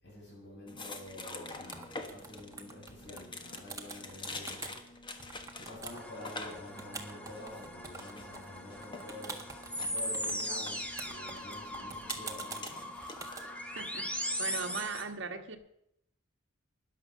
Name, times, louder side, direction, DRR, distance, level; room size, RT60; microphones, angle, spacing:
voice 1, 0.0-4.6 5.6-9.4 9.7-12.9, left 1 dB, 55° left, -4 dB, 7.2 m, -48 dB
sound 1, 0.7-14.9, left 3 dB, 25° left, 1.3 m, -47 dB
sound 2, 1.1-1.3 1.5-3.2 3.6-4.8 5.2-15.0, right 4 dB, 15° right, 1.5 m, -46 dB
sound 3, 5.9-15.0, equal, 5° left, 1.5 m, -39 dB
voice 2, 13.7-15.6, right 5 dB, 60° right, 3 dB, 1.5 m, -39 dB
13.0 x 10.5 x 6.4 m, 0.77 s
head